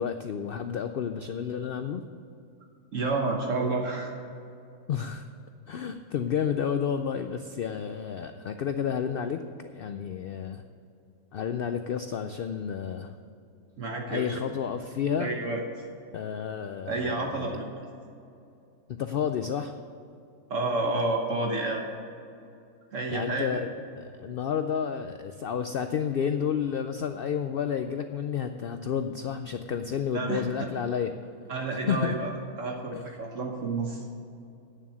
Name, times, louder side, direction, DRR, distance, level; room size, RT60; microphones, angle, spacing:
voice 1, 0.0-2.0 4.9-5.3 5.7-10.6 11.3-13.1 14.1-15.4 16.1-17.6 18.9-19.8 23.1-23.7 23.9-31.1 31.9-32.2 32.9-33.0, left 7 dB, 90° left, 8 dB, 0.5 m, -31 dB
voice 2, 2.9-4.1 13.8-14.3 15.2-15.6 16.9-17.9 20.5-21.9 22.9-23.6 30.1-30.4 31.5-32.3 32.6-34.1, right 3 dB, 60° right, 1 dB, 1.4 m, -30 dB
9.1 x 7.2 x 8.6 m, 2.5 s
omnidirectional pair, 1.5 m